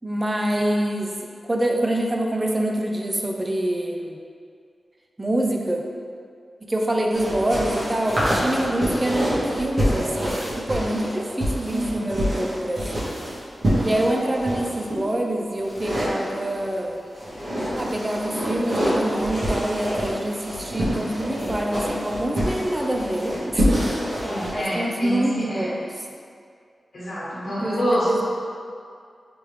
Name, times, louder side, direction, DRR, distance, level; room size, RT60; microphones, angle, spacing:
voice 1, 0.0-1.1 1.4-4.2 5.2-5.9 6.6-13.1 13.8-17.0 17.7-23.7 24.1-24.2 24.5-25.8 27.6-28.2, right 1 dB, 30° right, 1 dB, 0.5 m, -25 dB
sound 1, 7.1-15.0 15.6-16.7 17.1-24.5, equal, 60° right, 1.4 m, -26 dB
voice 2, 11.6-12.0 14.1-14.3 24.2-25.7 26.9-28.2, equal, 70° left, -10 dB, 1.3 m, -27 dB
3.4 x 3.4 x 3.1 m, 2.2 s
cardioid pair, 40°, 0 cm